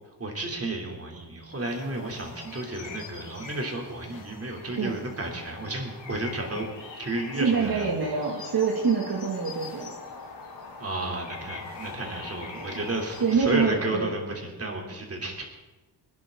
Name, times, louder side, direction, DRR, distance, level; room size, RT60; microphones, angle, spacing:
voice 1, 0.2-6.7 6.9-7.9 10.8-15.4, right 2 dB, 35° right, 0 dB, 3.2 m, -32 dB
sound 1, 1.5-13.4, left 4 dB, 75° left, 2.9 m, -43 dB
voice 2, 7.3-9.9 12.5-12.7 13.2-14.1, right 5 dB, 55° right, -3 dB, 2.3 m, -25 dB
25.0 x 10.5 x 3.8 m, 1.2 s
wide cardioid pair, 125°, 43 cm